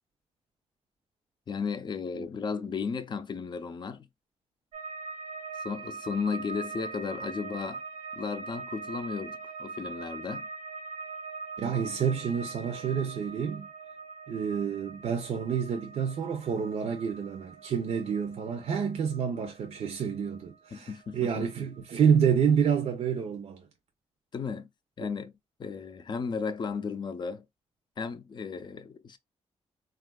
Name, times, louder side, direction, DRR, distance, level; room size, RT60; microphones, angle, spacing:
voice 1, 1.5-4.1 5.6-7.8 8.2-10.5 20.7-21.5 24.3-24.7 25.0-25.3 25.6-27.4 28.0-29.2, left 5 dB, 40° left, 0.5 m, -34 dB
sound 1, 4.7-21.8 22.1-22.8, right 4 dB, 85° right, 1.0 m, -43 dB
voice 2, 11.6-13.7 14.3-23.6, right 7 dB, 65° right, 0.6 m, -28 dB
3.4 x 2.4 x 2.2 m
wide cardioid pair, 130°, 11 cm